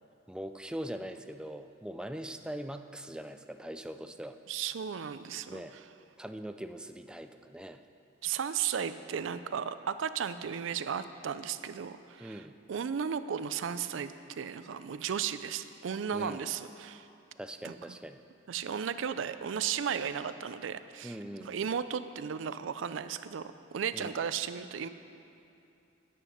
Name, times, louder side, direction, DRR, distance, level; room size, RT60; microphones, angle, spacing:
voice 1, 0.3-4.4 5.5-5.7 6.2-7.8 12.2-12.6 16.1-16.5 17.4-18.2 21.0-21.7 23.9-24.2, right 1 dB, 5° right, 8 dB, 0.3 m, -41 dB
voice 2, 4.5-5.6 8.2-12.4 12.7-17.1 17.6-17.7 18.5-21.1 21.4-24.9, right 7 dB, 80° right, 12 dB, 0.4 m, -35 dB
9.8 x 8.3 x 5.7 m, 2.7 s
head